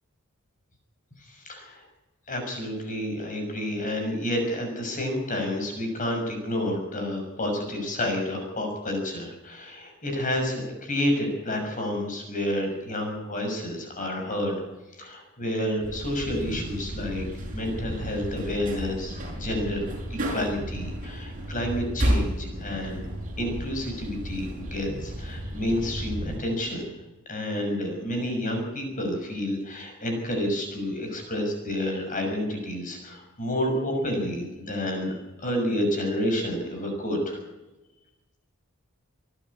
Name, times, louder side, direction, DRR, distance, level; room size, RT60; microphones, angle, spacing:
voice 1, 1.4-1.8 2.3-14.6 14.9-17.3 17.5-19.8 20.3-23.0 23.4-26.9 27.3-37.4, left 1 dB, 40° left, 3 dB, 6.3 m, -29 dB
sound 1, 15.8-26.4, equal, 40° right, 6.4 m, -32 dB
27.0 x 11.5 x 8.5 m, 1.1 s
head